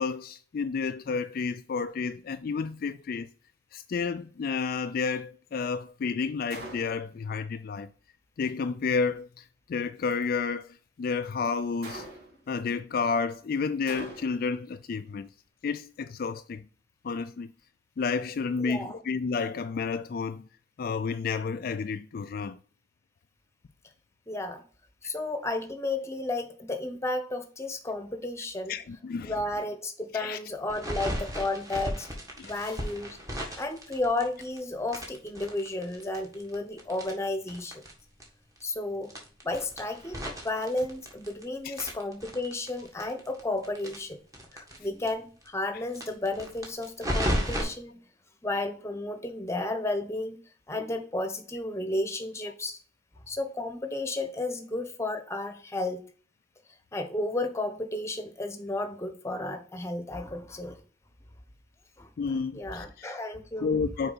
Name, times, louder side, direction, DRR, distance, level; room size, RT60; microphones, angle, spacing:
voice 1, 0.0-3.3 3.7-7.9 8.4-12.1 12.5-15.3 15.6-16.6 17.0-17.5 18.0-20.4 20.8-22.6 28.7-29.3 30.1-30.4 32.4-32.8 33.4-33.6 41.6-41.9 62.2-63.2 63.6-64.1, left 5 dB, 55° left, 0.3 m, -31 dB
Gunshot gunfire, 6.5-7.2 11.8-12.5 13.9-14.6, right 2 dB, 65° right, 2.4 m, -42 dB
voice 2, 18.6-19.0 24.3-24.6 25.0-28.7 29.2-32.1 32.4-33.2 33.6-37.8 38.6-39.1 39.4-44.2 44.5-48.0 48.4-50.4 50.7-52.8 53.3-56.0 56.9-60.8 62.0-63.8, left 2 dB, 15° left, 1.0 m, -33 dB
sound 1, 30.7-34.6 34.9-37.9 38.2-38.3 38.6-38.7 39.1-41.4 41.7-44.8 45.1-45.2 45.4-45.5 45.9-47.6, equal, 20° right, 1.8 m, -34 dB
6.7 x 4.6 x 4.1 m
head